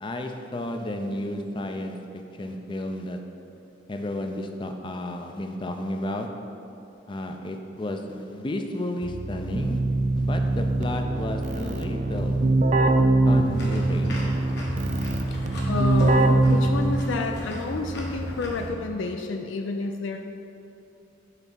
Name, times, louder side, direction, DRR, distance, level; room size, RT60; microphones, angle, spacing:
voice 1, 0.0-2.0 2.4-3.2 3.9-6.3 7.1-9.8 10.1-12.5 13.3-14.3, left 1 dB, 25° left, 5 dB, 0.4 m, -32 dB
Keyboard (musical), 9.0-17.3, right 2 dB, 40° right, 0.4 m, -23 dB
sound 1, 13.5-18.7, equal, 60° left, 1.2 m, -35 dB
voice 2, 15.7-20.2, left 3 dB, 85° left, 4 dB, 0.4 m, -30 dB
5.6 x 4.0 x 6.0 m, 2.8 s
head